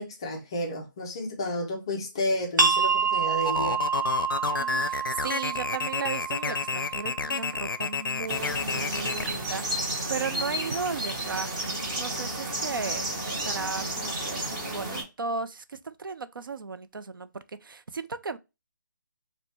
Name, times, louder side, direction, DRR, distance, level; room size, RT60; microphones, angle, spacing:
voice 1, 0.0-3.8, left 1 dB, 15° left, 0.3 m, -31 dB
sound 1, 2.6-8.0, right 6 dB, 60° right, 0.9 m, -28 dB
sound 2, 3.4-9.3, left 5 dB, 85° left, 0.4 m, -30 dB
voice 2, 4.6-11.5 12.0-18.4, right 5 dB, 85° right, 0.5 m, -35 dB
sound 3, 8.3-15.0, right 1 dB, 20° right, 0.8 m, -32 dB
5.1 x 2.1 x 3.1 m
hypercardioid pair, 165°, 11 cm